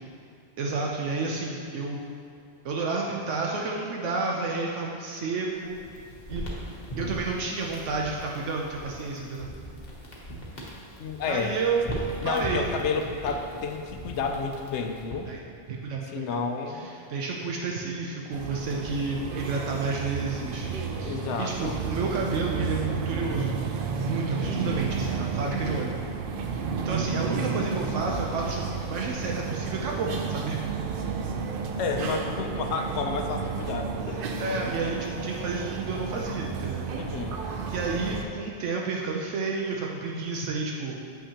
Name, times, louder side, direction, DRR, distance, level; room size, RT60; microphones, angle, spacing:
voice 1, 0.6-2.0 2.6-5.8 6.3-6.4 7.0-9.5 11.2-11.8 12.2-12.7 15.3-15.4 15.7-16.4 16.7-20.7 21.0-23.6 24.0-26.0 26.3-30.6 34.4-36.8 37.7-41.0, right 4 dB, 80° right, -1 dB, 0.9 m, -31 dB
sound 1, 5.6-15.4, right 1 dB, 40° left, 1.1 m, -39 dB
voice 2, 11.0-11.6 12.2-15.3 16.0-16.9 18.8-19.4 21.0-21.8 24.5-24.8 31.8-34.3 36.9-37.4, left 5 dB, 70° left, 4 dB, 0.8 m, -31 dB
sound 2, 18.3-38.2, right 5 dB, 60° right, 0.6 m, -32 dB
7.8 x 5.7 x 2.8 m, 2.4 s
omnidirectional pair, 1.3 m